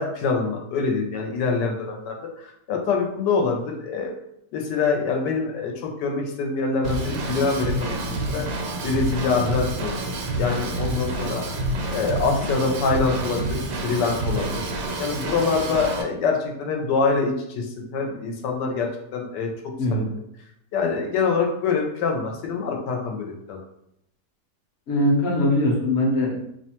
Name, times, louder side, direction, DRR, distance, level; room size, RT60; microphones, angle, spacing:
voice 1, 0.0-4.1 4.5-8.5 8.8-9.9 10.3-11.4 11.9-13.6 13.8-14.6 15.0-19.5 19.9-20.1 20.7-23.6, left 4 dB, 90° left, 1 dB, 1.2 m, -25 dB
Drum kit / Drum, 6.8-16.0, right 2 dB, 80° right, 1.2 m, -28 dB
voice 2, 24.9-26.4, left 1 dB, 55° left, -3 dB, 0.7 m, -21 dB
3.0 x 2.1 x 2.8 m, 0.77 s
omnidirectional pair, 1.8 m